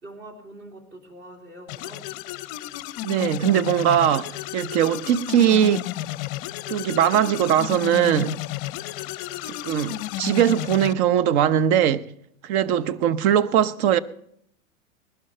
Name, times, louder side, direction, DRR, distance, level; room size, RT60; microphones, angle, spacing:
voice 1, 0.0-2.1 9.2-10.0 12.7-13.1, right 1 dB, 25° right, 3.4 m, -45 dB
sound 1, 1.7-10.9, left 16 dB, 40° left, 0.6 m, -32 dB
voice 2, 3.0-5.9 6.7-8.4 9.5-12.1 12.4-14.0, right 10 dB, 50° right, 0.9 m, -20 dB
20.0 x 12.0 x 4.3 m
hypercardioid pair, 110°, 41 cm